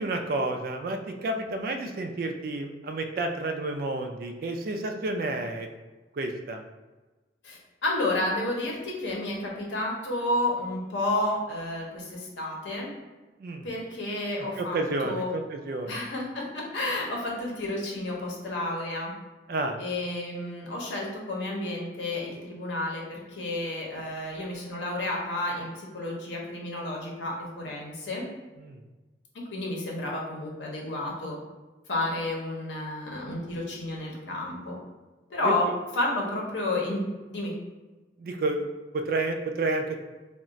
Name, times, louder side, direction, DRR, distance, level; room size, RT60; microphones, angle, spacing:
voice 1, 0.0-5.7 6.2-6.6 13.4-13.7 14.6-16.0 19.5-19.8 28.6-28.8 35.4-35.5 38.2-38.7 38.9-40.0, right 2 dB, 55° right, 5 dB, 0.3 m, -30 dB
voice 2, 7.4-12.9 13.6-14.8 15.0-15.3 15.9-19.1 19.8-28.2 29.3-31.4 31.9-34.8 35.3-35.7 35.9-37.0 37.3-37.5, left 2 dB, 90° left, -2 dB, 0.7 m, -31 dB
2.4 x 2.1 x 3.9 m, 1.2 s
head